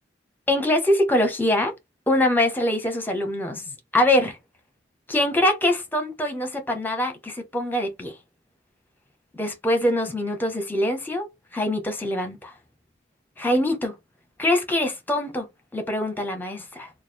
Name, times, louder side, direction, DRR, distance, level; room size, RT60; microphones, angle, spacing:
voice 1, 0.5-1.7 2.1-3.6 3.9-4.4 5.1-8.1 9.3-12.5 13.4-14.0 14.4-15.5 15.7-16.9, left 1 dB, 10° left, 0.7 m, -23 dB
3.1 x 2.3 x 4.3 m
head